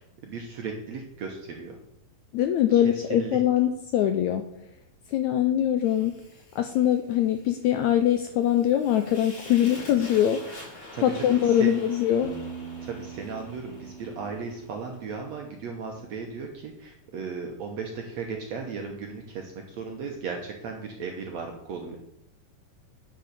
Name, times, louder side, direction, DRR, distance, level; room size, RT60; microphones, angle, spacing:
voice 1, 0.0-1.8 2.7-3.4 10.9-11.7 12.8-22.0, right 5 dB, 65° right, 2 dB, 1.9 m, -36 dB
voice 2, 2.3-4.4 5.1-6.1 6.5-10.4 11.0-12.3, left 11 dB, 85° left, 7 dB, 1.6 m, -23 dB
Fire, 5.8-15.0, left 2 dB, 45° left, 6.2 m, -46 dB
Piano, 12.2-15.9, right 5 dB, 10° left, 1.6 m, -42 dB
10.5 x 5.9 x 6.7 m, 0.78 s
omnidirectional pair, 4.2 m